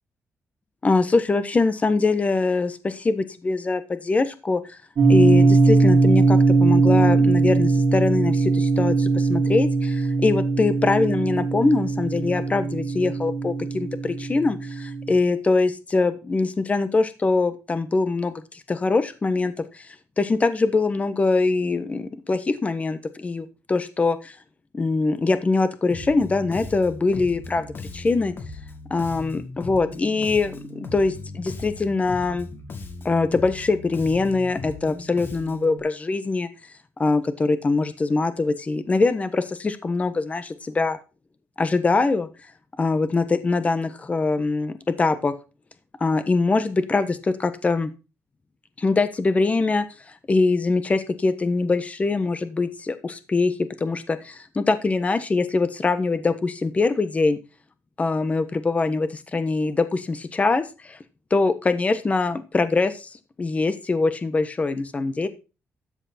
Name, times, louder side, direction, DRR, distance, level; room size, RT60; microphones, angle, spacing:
voice 1, 0.8-4.8 5.1-24.3 24.7-28.3 28.9-32.5 33.0-36.5 37.0-41.0 41.6-42.3 42.8-45.3 46.0-47.9 48.8-49.9 50.3-57.4 58.0-61.0 61.3-63.1 63.4-65.3, left 3 dB, 30° left, 11 dB, 1.2 m, -23 dB
sound 1, 5.0-15.1, right 3 dB, 50° right, 4.6 m, -20 dB
Bass guitar, 25.9-35.8, left 3 dB, 45° left, 2.6 m, -38 dB
13.0 x 8.1 x 4.4 m, 0.32 s
cardioid pair, 110°, 5 cm